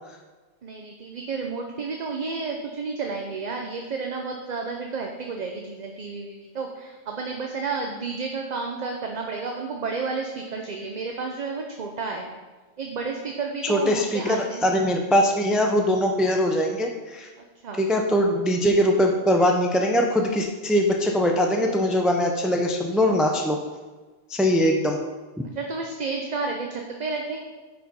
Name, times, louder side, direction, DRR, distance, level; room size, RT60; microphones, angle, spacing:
voice 1, 0.6-12.3 12.8-14.7 17.6-17.8 25.5-27.4, right 4 dB, 45° right, 2 dB, 0.7 m, -31 dB
voice 2, 13.7-17.3 17.8-23.6 24.3-25.0, equal, ahead, 2 dB, 0.4 m, -22 dB
8.7 x 5.0 x 5.3 m, 1.3 s
omnidirectional pair, 1.2 m